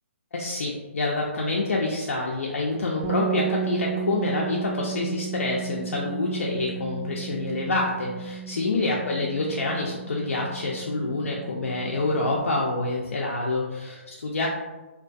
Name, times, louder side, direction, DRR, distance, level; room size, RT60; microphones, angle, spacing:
voice 1, 0.3-14.5, left 2 dB, 85° left, -3 dB, 0.4 m, -27 dB
sound 1, 3.0-12.8, right 8 dB, 10° right, 0.3 m, -34 dB
2.3 x 2.2 x 2.5 m, 1.2 s
hypercardioid pair, 145°, 7 cm